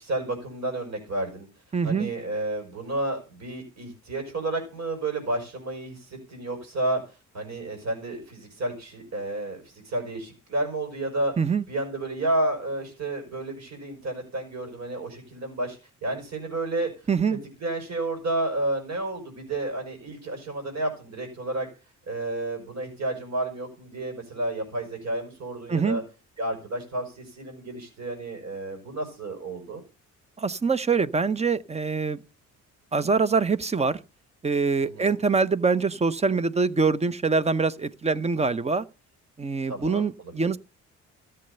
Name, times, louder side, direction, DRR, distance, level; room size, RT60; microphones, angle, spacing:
voice 1, 0.0-1.5 1.8-7.0 7.3-11.3 11.7-16.9 17.6-21.7 22.1-26.0 26.4-29.8 34.8-35.2 39.7-40.5, right 2 dB, 60° right, 5.8 m, -31 dB
voice 2, 1.7-2.1 11.4-11.6 17.1-17.4 25.7-26.0 30.4-32.2 32.9-34.0 34.4-38.8 39.4-40.6, right 4 dB, 20° right, 0.8 m, -24 dB
14.0 x 7.9 x 6.7 m
cardioid pair, 90°, 30 cm